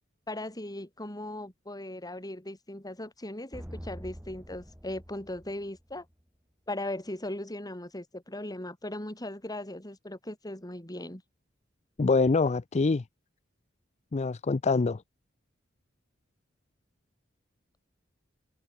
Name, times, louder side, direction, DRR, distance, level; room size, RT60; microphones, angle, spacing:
voice 1, 0.3-6.1 6.7-11.2, left 1 dB, 20° left, 4.0 m, -38 dB
sound 1, 3.5-6.2, equal, 10° right, 3.7 m, -45 dB
voice 2, 12.0-13.0 14.1-15.0, left 4 dB, 35° left, 0.5 m, -25 dB
open air
head